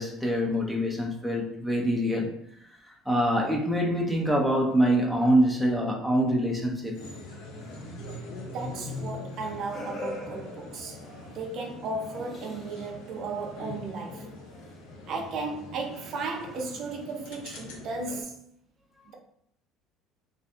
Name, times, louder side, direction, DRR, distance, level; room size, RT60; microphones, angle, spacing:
voice 1, 0.0-2.3 3.1-7.0, equal, 5° left, 0.5 m, -25 dB
sound 1, 6.9-18.2, left 2 dB, 90° left, 0.7 m, -43 dB
sound 2, 7.6-13.1 13.3-13.6 14.6-14.8 15.4-15.5 15.9-17.2, left 2 dB, 40° left, 1.1 m, -45 dB
voice 2, 8.5-11.0 11.3-14.3 15.1-18.4, right 3 dB, 55° right, 0.6 m, -35 dB
2.6 x 2.5 x 3.4 m
cardioid pair, 125°, 0 cm